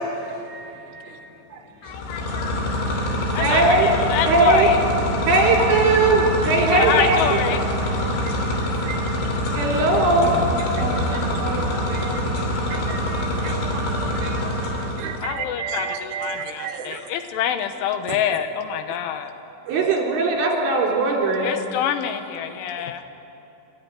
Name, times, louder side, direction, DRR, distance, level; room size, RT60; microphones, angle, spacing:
voice 1, 0.3-1.3 8.0-8.3 8.8-9.0 11.1-12.2 12.7-17.0 19.7-19.9, right 7 dB, 75° right, 4 dB, 2.9 m, -34 dB
voice 2, 1.8-2.6 3.3-4.8 6.7-7.6 9.1-9.2 15.2-19.3 21.4-23.0, left 9 dB, 85° left, 8 dB, 3.5 m, -26 dB
sound 1, 1.9-15.3, left 1 dB, 70° left, 5.0 m, -25 dB
voice 3, 3.4-3.9 4.3-4.7 5.3-7.4 9.5-10.4 19.7-21.6, right 2 dB, 55° right, -1 dB, 5.2 m, -19 dB
sound 2, 10.2-19.8, right 2 dB, 25° right, 3.2 m, -35 dB
28.0 x 13.5 x 9.7 m, 2.9 s
omnidirectional pair, 5.5 m